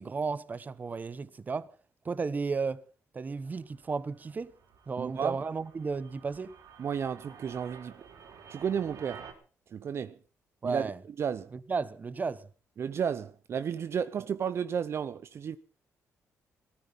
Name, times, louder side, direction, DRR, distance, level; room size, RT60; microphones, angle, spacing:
voice 1, 0.0-1.7 2.0-2.8 3.1-4.5 4.9-6.5 10.6-11.0 11.7-12.5, right 4 dB, 30° right, 1.0 m, -33 dB
sound 1, 3.3-9.3, right 6 dB, 75° right, 4.1 m, -52 dB
voice 2, 5.0-5.4 6.8-7.9 8.5-9.3 9.7-10.2 10.6-10.8 11.2-11.5 12.8-15.6, right 7 dB, 50° right, 0.7 m, -32 dB
17.5 x 14.5 x 5.5 m
cardioid pair, 115°, 6 cm